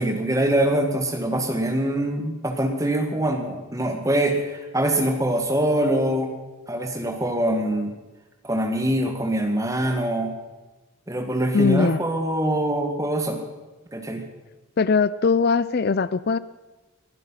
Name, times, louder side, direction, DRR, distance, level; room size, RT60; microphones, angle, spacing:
voice 1, 0.0-6.3 6.7-7.9 8.4-10.3 11.1-13.4 13.9-14.2, right 1 dB, 15° right, 4 dB, 1.7 m, -24 dB
voice 2, 11.5-12.0 14.8-16.4, left 5 dB, 45° left, 17 dB, 0.4 m, -20 dB
21.5 x 11.0 x 5.7 m, 1.1 s
head